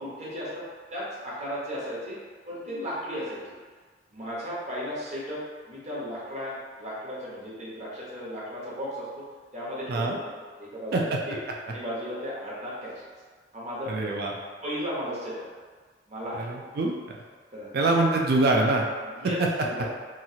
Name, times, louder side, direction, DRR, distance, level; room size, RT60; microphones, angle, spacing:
voice 1, 0.0-0.6 0.9-2.2 2.5-3.5 4.1-9.2 9.5-10.2 10.6-11.4 11.7-13.1 13.5-14.0 14.6-15.5 16.1-16.7 17.5-17.7 19.0-19.9, equal, 40° right, -7 dB, 0.9 m, -35 dB
voice 2, 13.9-14.3 16.4-16.9 17.7-18.9, right 2 dB, 60° right, 0 dB, 0.4 m, -24 dB
3.0 x 2.4 x 2.7 m, 1.5 s
head